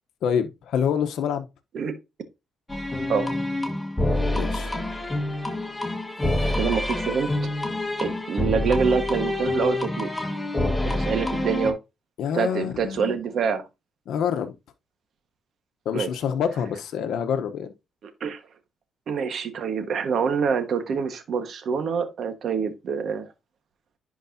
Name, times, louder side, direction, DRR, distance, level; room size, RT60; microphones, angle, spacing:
voice 1, 0.2-1.5 4.3-4.7 6.3-6.4 12.2-13.2 14.1-14.5 15.8-17.7, left 8 dB, 75° left, 0.9 m, -27 dB
sound 1, 2.7-11.7, left 1 dB, 10° left, 1.7 m, -27 dB
voice 2, 6.4-7.3 8.0-10.1 10.8-11.8 12.3-13.6 15.9-16.1 18.0-18.4 19.1-23.3, right 6 dB, 60° right, 1.4 m, -26 dB
10.5 x 4.6 x 2.7 m
cardioid pair, 90°, 0 cm